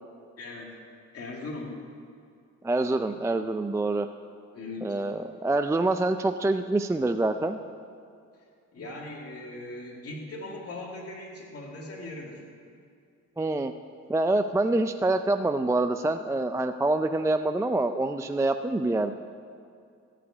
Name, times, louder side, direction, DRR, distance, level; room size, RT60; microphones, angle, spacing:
voice 1, 0.4-0.7 1.1-1.8 4.5-5.0 8.7-12.4, left 2 dB, 50° left, -1 dB, 2.4 m, -39 dB
voice 2, 2.6-4.1 4.8-7.6 13.4-13.7 14.1-19.1, right 2 dB, 10° right, 8 dB, 0.4 m, -26 dB
14.5 x 5.0 x 8.4 m, 2.4 s
cardioid pair, 90°, 30 cm